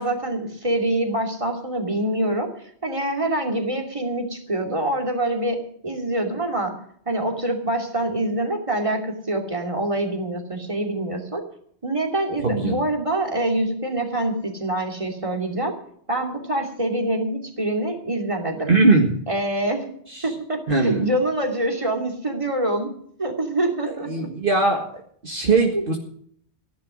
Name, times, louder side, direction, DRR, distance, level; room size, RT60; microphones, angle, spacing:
voice 1, 0.0-2.5 2.8-6.7 7.1-11.4 11.8-15.7 16.1-18.7 19.3-19.9 20.2-22.9 23.2-24.3 25.7-26.0, right 1 dB, 30° right, 2 dB, 2.7 m, -25 dB
voice 2, 12.4-12.8 18.7-19.2 20.1-20.2 20.7-21.1 24.1-24.9 25.2-26.0, right 3 dB, 55° right, 1 dB, 1.9 m, -20 dB
14.5 x 11.5 x 6.3 m, 0.64 s
omnidirectional pair, 1.1 m